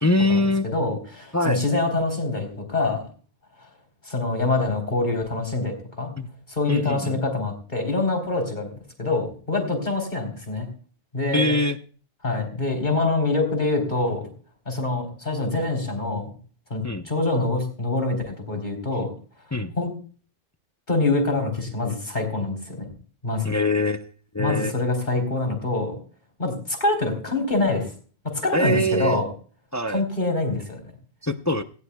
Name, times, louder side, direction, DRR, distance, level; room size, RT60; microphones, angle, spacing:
voice 1, 0.0-0.7 1.3-1.6 6.2-6.3 6.7-7.2 11.3-11.8 16.8-17.1 19.5-19.7 23.4-24.7 28.5-29.2 29.7-30.0 31.2-31.6, left 1 dB, 20° left, 8 dB, 0.5 m, -23 dB
voice 2, 0.6-3.0 4.1-6.1 6.5-8.7 9.0-10.7 11.1-11.6 12.2-14.3 14.7-16.3 16.7-19.1 19.8-19.9 20.9-22.9 23.2-23.5 24.4-26.0 26.4-27.9 28.2-29.3 29.9-30.8, left 2 dB, 45° left, 3 dB, 3.9 m, -25 dB
18.0 x 16.0 x 2.3 m, 0.41 s
omnidirectional pair, 1.1 m